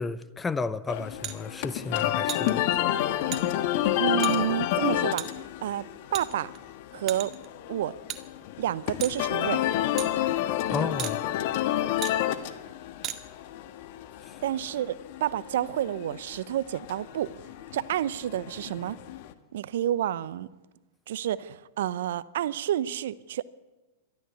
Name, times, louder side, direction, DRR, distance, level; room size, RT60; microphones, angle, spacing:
voice 1, 0.0-2.6 10.7-11.2 14.3-14.4, left 4 dB, 15° left, 0.8 m, -32 dB
sound 1, 0.9-19.3, left 12 dB, 55° left, 1.5 m, -30 dB
sound 2, 1.2-1.4 2.3-2.5 3.3-3.4 4.2-4.4 5.2-5.3 6.1-6.6 7.1-7.5 8.1-8.2 9.0-9.2 10.0-10.1 11.0-11.2 12.0-12.2 13.0-13.2, right 11 dB, 35° right, 1.8 m, -34 dB
voice 2, 4.0-5.2 5.6-5.8 6.1-6.5 6.9-7.3 7.7-7.9 8.6-9.6 14.4-17.3 17.7-19.0 19.5-20.5 21.1-23.4, right 11 dB, 65° right, 0.8 m, -29 dB
22.0 x 14.0 x 8.3 m
hypercardioid pair, 100°, 0 cm